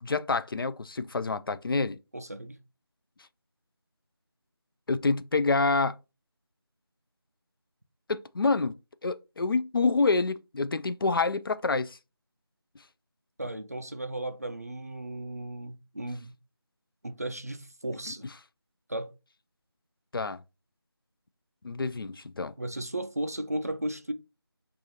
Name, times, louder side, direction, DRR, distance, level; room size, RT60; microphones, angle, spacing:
voice 1, 0.0-2.0 4.9-6.0 8.1-8.8 9.0-12.0 20.1-20.4 21.6-22.5, left 3 dB, 60° left, 0.4 m, -27 dB
voice 2, 2.1-2.6 13.4-16.4 17.0-18.3 18.9-19.1 22.6-24.1, right 1 dB, 40° right, 0.3 m, -35 dB
4.6 x 2.5 x 2.7 m
figure-of-eight pair, 175°, 13 cm